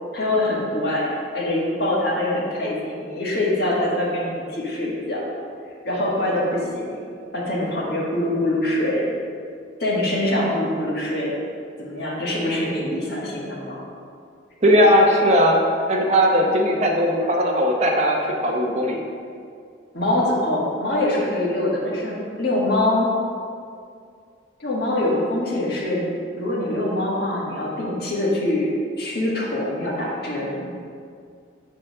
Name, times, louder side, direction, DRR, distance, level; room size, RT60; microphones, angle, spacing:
voice 1, 0.1-5.3 5.8-7.1 7.3-9.1 9.8-11.4 11.8-13.8 19.9-23.1 24.6-26.1 26.3-28.7 29.0-30.7, left 1 dB, 55° left, -5 dB, 1.7 m, -24 dB
voice 2, 14.6-15.6 15.9-18.2 18.4-19.0, equal, 35° right, -1 dB, 0.8 m, -18 dB
7.3 x 3.7 x 6.4 m, 2.3 s
head